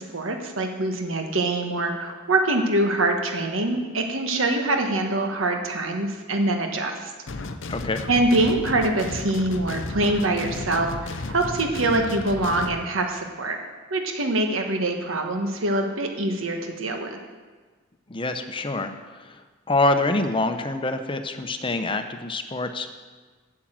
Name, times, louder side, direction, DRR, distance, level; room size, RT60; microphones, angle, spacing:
voice 1, 0.0-7.1 8.1-13.6 13.9-17.2, right 2 dB, 80° right, 4 dB, 1.4 m, -24 dB
sound 1, 7.3-12.8, left 2 dB, 65° left, 0.7 m, -34 dB
voice 2, 7.7-8.0 18.1-22.9, left 2 dB, 25° left, 7 dB, 0.7 m, -26 dB
8.9 x 7.4 x 7.5 m, 1.4 s
head